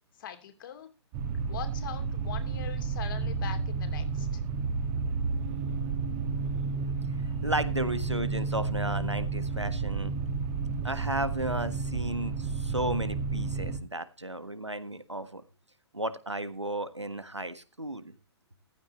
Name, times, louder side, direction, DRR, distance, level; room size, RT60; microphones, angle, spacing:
voice 1, 0.2-0.9 1.5-4.3, left 9 dB, 50° left, 6 dB, 2.8 m, -42 dB
sound 1, 1.1-13.8, right 4 dB, 30° right, 2.0 m, -31 dB
voice 2, 7.4-10.1 10.8-15.4 15.9-18.2, right 1 dB, 90° right, 12 dB, 1.4 m, -34 dB
15.0 x 11.0 x 3.1 m, 0.32 s
figure-of-eight pair, 115°, 14 cm